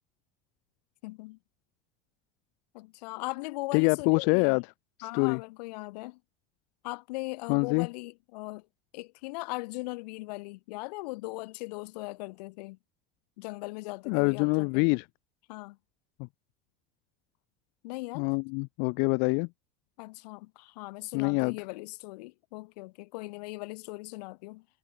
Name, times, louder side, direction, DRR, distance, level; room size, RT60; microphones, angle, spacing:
voice 1, 1.0-1.4 2.7-4.6 5.0-6.2 6.8-8.7 8.9-12.8 13.4-15.0 15.5-15.8 17.8-18.3 20.0-24.7, left 23 dB, 85° left, 2.2 m, -39 dB
voice 2, 3.7-4.6 5.0-5.4 7.5-7.9 14.1-15.0 16.2-16.3 18.1-19.5 21.1-21.6, left 37 dB, 65° left, 0.5 m, -25 dB
supercardioid pair, 125°, 20 cm